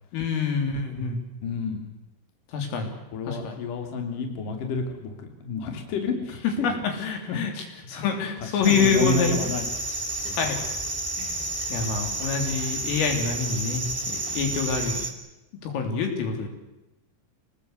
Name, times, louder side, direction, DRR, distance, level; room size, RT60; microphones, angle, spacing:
voice 1, 0.1-1.2 2.5-2.9 3.3-3.6 6.6-7.5 7.9-9.4 10.4-10.6 11.2-11.4 11.7-15.0 15.6-16.5, left 5 dB, 75° left, 4 dB, 5.8 m, -26 dB
voice 2, 1.4-1.9 3.1-7.4 8.5-9.7 10.2-10.4, left 4 dB, 45° left, 4 dB, 4.1 m, -30 dB
sound 1, 8.6-15.1, right 2 dB, 35° right, 0.5 m, -31 dB
26.5 x 19.5 x 8.1 m, 0.95 s
omnidirectional pair, 5.9 m